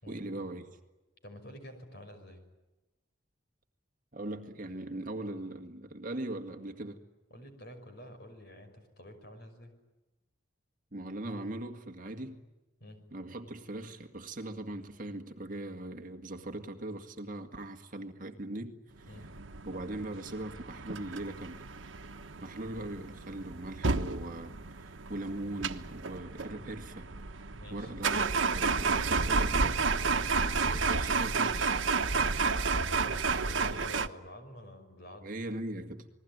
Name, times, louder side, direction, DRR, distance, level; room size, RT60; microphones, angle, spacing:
voice 1, 0.1-0.7 4.1-7.0 10.9-12.4 13.1-19.1 19.6-21.6 22.4-27.1 27.7-29.8 30.4-31.9 35.2-36.0, right 1 dB, 45° right, 1.9 m, -40 dB
voice 2, 1.2-2.4 7.3-9.7 12.8-13.0 19.1-19.3 27.5-27.9 30.0-30.3 33.0-35.3, left 1 dB, 55° left, 5.7 m, -49 dB
sound 1, 19.1-34.1, right 4 dB, 85° right, 1.2 m, -31 dB
29.0 x 21.0 x 9.5 m
head